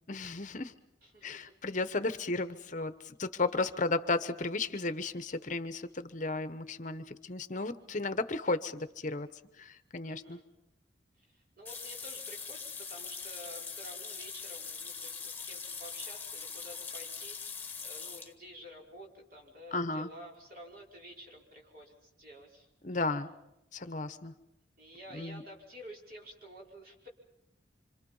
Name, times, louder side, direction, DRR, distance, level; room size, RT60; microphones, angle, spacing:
voice 1, 0.1-0.7 1.2-9.3 9.6-10.4 19.7-20.1 22.8-23.3 23.7-24.3 25.1-25.4, left 3 dB, 40° left, 10 dB, 1.0 m, -34 dB
voice 2, 1.0-1.6 10.0-10.4 11.2-22.7 24.8-27.1, equal, 50° right, -1 dB, 5.2 m, -51 dB
sound 1, 11.7-18.3, left 5 dB, 10° left, 1.5 m, -42 dB
26.5 x 26.0 x 5.5 m, 0.86 s
head